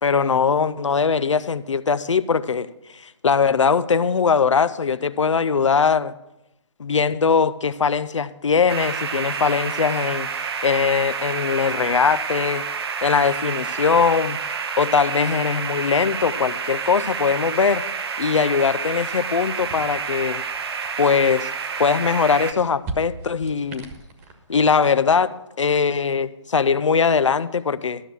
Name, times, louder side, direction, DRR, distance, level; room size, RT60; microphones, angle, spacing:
voice 1, 0.0-2.7 2.9-6.1 6.8-12.7 13.0-14.4 14.8-17.8 18.2-20.4 21.0-21.5 21.8-23.9 24.5-28.0, left 5 dB, 85° left, 13 dB, 0.6 m, -21 dB
sound 1, 8.7-22.5, right 6 dB, 55° right, 1.0 m, -29 dB
sound 2, 19.6-25.0, right 2 dB, 30° right, 1.5 m, -40 dB
13.0 x 6.6 x 6.0 m, 0.92 s
hypercardioid pair, 145°, 15 cm